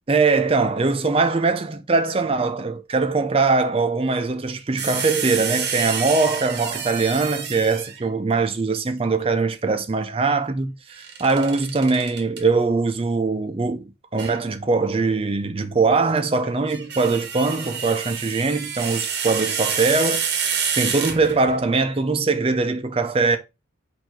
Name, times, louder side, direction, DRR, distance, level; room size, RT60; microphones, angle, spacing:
voice 1, 0.1-20.3 20.8-23.4, right 3 dB, 30° right, 0.5 m, -22 dB
sound 1, 4.8-8.1 11.0-12.4 14.2-14.4 16.5-21.6, right 7 dB, 55° right, 0.8 m, -28 dB
4.5 x 2.6 x 4.4 m
head